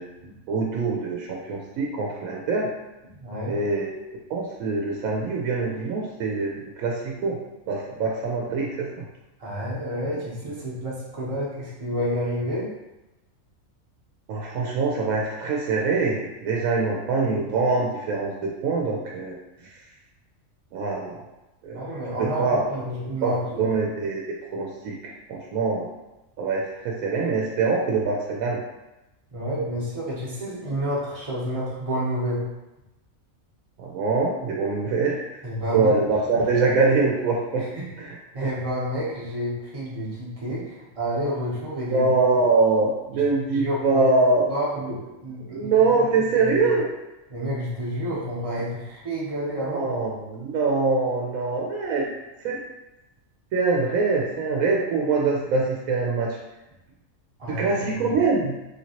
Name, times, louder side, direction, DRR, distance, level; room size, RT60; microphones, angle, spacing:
voice 1, 0.5-2.7 3.5-4.0 4.3-7.4 7.7-8.9 14.3-19.4 19.6-19.7 20.7-21.2 21.6-21.8 22.2-22.7 23.2-25.9 26.4-28.6 33.8-35.4 35.7-37.7 38.0-38.1 38.4-38.5 41.9-44.5 45.5-46.9 49.6-52.1 52.4-52.6 53.5-56.4 57.5-58.5, right 3 dB, 80° right, -2 dB, 1.0 m, -24 dB
voice 2, 3.1-3.6 9.4-12.7 21.7-23.8 29.3-32.4 35.4-36.0 36.3-36.4 37.7-37.9 38.3-42.1 43.1-43.2 43.5-44.0 44.5-46.0 46.4-46.5 47.3-49.9 57.4-58.1, equal, 30° right, -6 dB, 0.8 m, -29 dB
3.4 x 2.9 x 2.8 m, 0.99 s
omnidirectional pair, 1.4 m